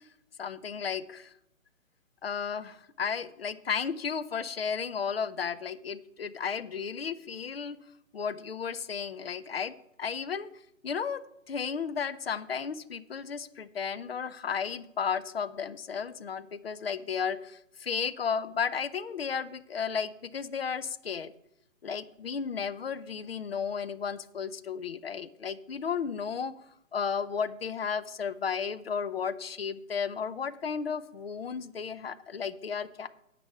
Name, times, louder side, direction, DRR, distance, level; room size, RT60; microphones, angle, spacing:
voice 1, 0.4-1.3 2.2-7.8 8.1-9.7 10.0-10.5 10.8-11.2 11.5-21.3 21.8-26.5 26.9-33.1, left 6 dB, 50° left, 15 dB, 0.6 m, -33 dB
9.8 x 5.1 x 8.1 m, 0.80 s
hypercardioid pair, 165°, 40 cm